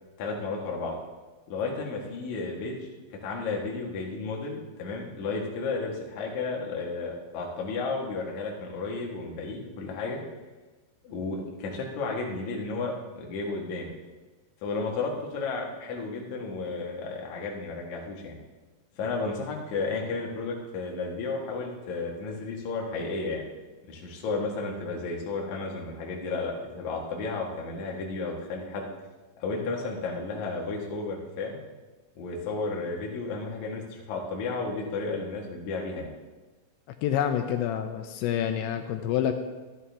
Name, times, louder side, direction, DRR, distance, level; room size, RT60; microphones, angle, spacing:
voice 1, 0.2-1.0 1.5-2.9 3.2-10.2 11.0-13.9 14.6-18.4 18.9-23.5 23.9-28.9 29.4-31.6 32.2-36.1, left 3 dB, 55° left, -1 dB, 2.2 m, -33 dB
voice 2, 37.0-39.3, left 10 dB, 85° left, 6 dB, 2.8 m, -27 dB
14.0 x 11.0 x 3.4 m, 1.2 s
omnidirectional pair, 5.3 m